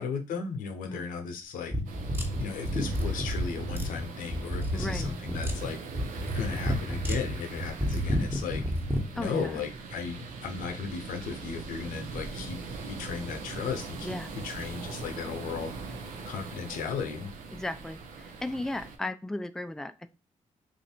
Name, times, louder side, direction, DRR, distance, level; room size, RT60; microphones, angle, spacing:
voice 1, 0.0-1.7 2.4-5.8 6.3-8.6 9.1-12.6 12.9-14.2 14.4-15.7 16.3-17.3, left 6 dB, 90° left, 5 dB, 0.7 m, -35 dB
sound 1, 1.7-9.1, equal, 15° right, 1.2 m, -30 dB
sound 2, 1.8-19.0, right 4 dB, 80° right, 0.7 m, -41 dB
voice 2, 4.7-5.1 9.2-9.6 14.0-14.3 17.5-20.1, left 1 dB, 5° left, 10 dB, 0.4 m, -35 dB
3.0 x 2.6 x 4.3 m, 0.30 s
supercardioid pair, 55°, 14 cm